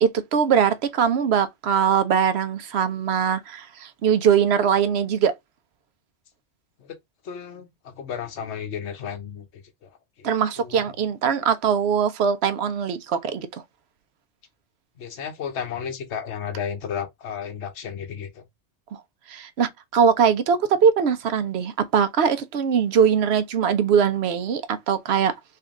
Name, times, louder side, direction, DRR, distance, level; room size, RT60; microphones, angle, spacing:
voice 1, 0.0-5.3 10.2-13.5 18.9-19.0 19.3-25.3, right 7 dB, 70° right, 0.9 m, -21 dB
voice 2, 7.2-9.4 9.8-9.9 10.2-10.3 10.6-10.7 15.0-18.4, left 7 dB, 75° left, 1.1 m, -33 dB
3.3 x 2.8 x 3.6 m
omnidirectional pair, 1.2 m